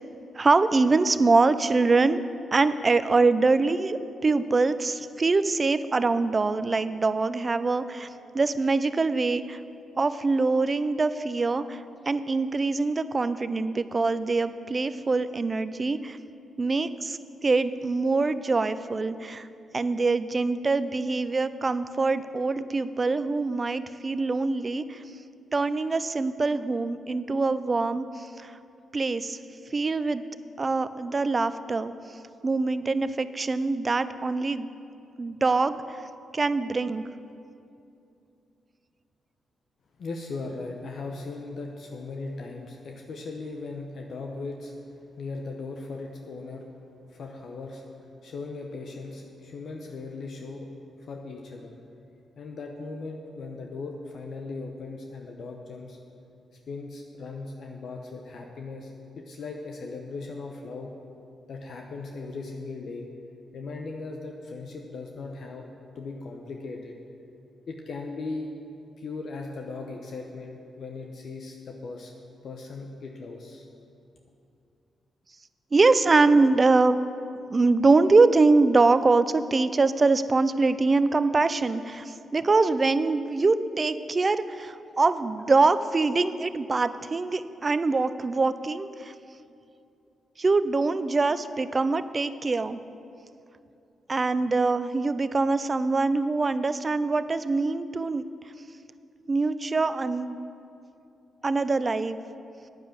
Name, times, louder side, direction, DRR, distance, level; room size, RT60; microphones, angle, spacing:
voice 1, 0.4-2.2 2.5-8.1 8.3-9.6 10.0-11.8 12.1-16.2 16.6-19.5 19.7-25.0 25.5-28.1 28.9-29.4 29.7-30.2 30.6-31.9 32.4-34.7 35.2-35.8 36.3-37.0 75.7-77.0 77.5-82.0 82.3-89.1 90.4-92.8 94.1-98.2 99.3-100.4 101.4-102.2, right 3 dB, 40° right, 13 dB, 0.5 m, -24 dB
voice 2, 40.0-44.7 45.2-46.7 47.1-47.8 48.2-50.7 51.0-51.7 52.4-56.0 56.7-58.9 59.2-60.9 61.5-63.1 63.5-66.9 67.7-68.5 69.0-72.1 72.4-73.7, left 3 dB, 65° left, 2 dB, 0.9 m, -38 dB
9.1 x 7.3 x 7.8 m, 2.6 s
supercardioid pair, 50°, 0 cm